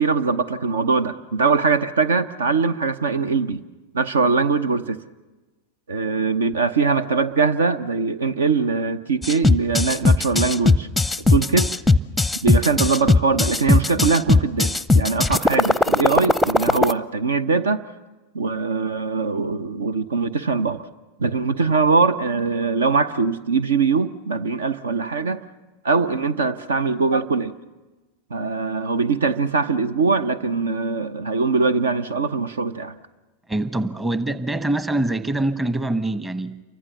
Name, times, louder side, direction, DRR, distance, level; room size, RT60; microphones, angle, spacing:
voice 1, 0.0-3.6 3.9-5.0 5.9-10.9 11.3-11.7 12.4-17.8 18.3-20.8 21.2-25.4 25.8-27.5 28.3-32.9, right 4 dB, 70° right, 15 dB, 0.9 m, -22 dB
sound 1, 9.2-16.9, left 3 dB, 5° left, 0.7 m, -18 dB
voice 2, 33.5-36.6, right 2 dB, 10° right, 12 dB, 1.2 m, -24 dB
29.0 x 24.0 x 6.9 m, 1.2 s
figure-of-eight pair, 90°, 0 cm